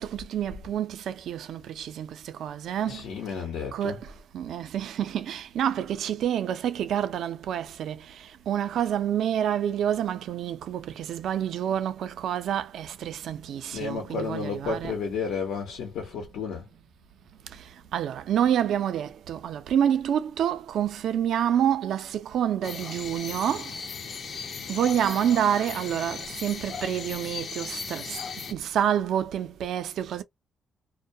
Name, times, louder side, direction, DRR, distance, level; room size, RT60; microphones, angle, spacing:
voice 1, 0.0-3.1 3.7-15.3 17.5-23.8 24.7-28.2 28.5-30.2, right 9 dB, 75° right, 0.4 m, -28 dB
voice 2, 2.9-4.0 13.7-16.7, left 5 dB, 85° left, 0.8 m, -32 dB
sound 1, 22.6-28.5, left 5 dB, 55° left, 0.6 m, -37 dB
2.2 x 2.1 x 2.6 m
cardioid pair, 90°, 0 cm